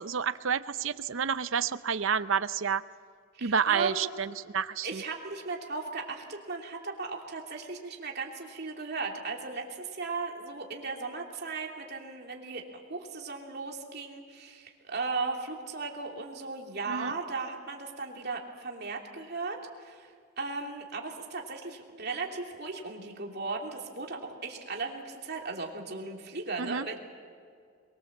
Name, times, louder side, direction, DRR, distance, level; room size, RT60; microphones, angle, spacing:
voice 1, 0.0-2.8 3.4-5.0 16.9-17.1 26.6-26.9, right 6 dB, 65° right, 14 dB, 0.7 m, -29 dB
voice 2, 3.3-4.1 4.8-20.1 20.4-27.0, right 4 dB, 50° right, 1 dB, 3.0 m, -37 dB
24.0 x 22.0 x 7.4 m, 2.1 s
head